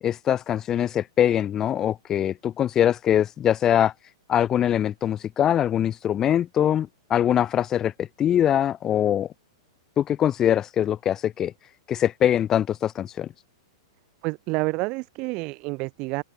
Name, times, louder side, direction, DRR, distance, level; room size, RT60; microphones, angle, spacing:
voice 1, 0.0-3.9 4.3-9.3 10.0-11.5 11.9-13.3, left 10 dB, 20° left, 2.0 m, -23 dB
voice 2, 14.2-16.2, right 26 dB, 35° right, 1.8 m, -28 dB
open air
supercardioid pair, 160°, 3 cm